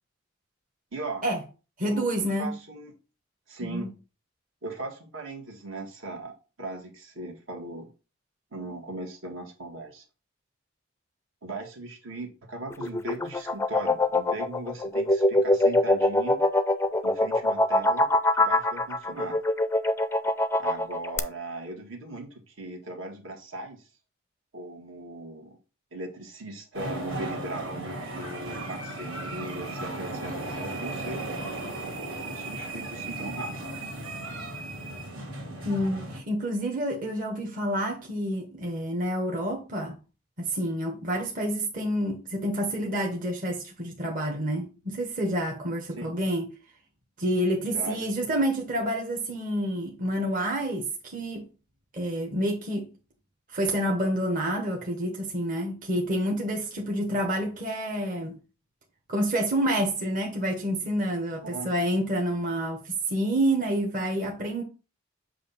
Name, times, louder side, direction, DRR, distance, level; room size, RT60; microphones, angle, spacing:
voice 1, 0.9-1.2 1.8-2.9 3.5-3.9 4.6-6.3 6.6-7.9 8.5-10.0 11.4-16.4 17.0-18.1 18.3-19.4 20.6-23.9 24.5-25.6 25.9-31.3 32.2-33.8 46.0-46.2 47.7-48.1 61.4-61.7, right 2 dB, 70° right, 1.7 m, -38 dB
voice 2, 1.8-2.5 3.6-3.9 35.6-40.0 40.4-46.4 47.2-51.5 51.9-52.9 53.5-58.3 59.1-64.6, right 1 dB, 40° right, 1.2 m, -28 dB
sound 1, 12.7-21.2, left 1 dB, 10° left, 0.4 m, -23 dB
sound 2, 26.7-36.2, right 2 dB, 90° right, 2.2 m, -36 dB
7.6 x 2.7 x 5.5 m
head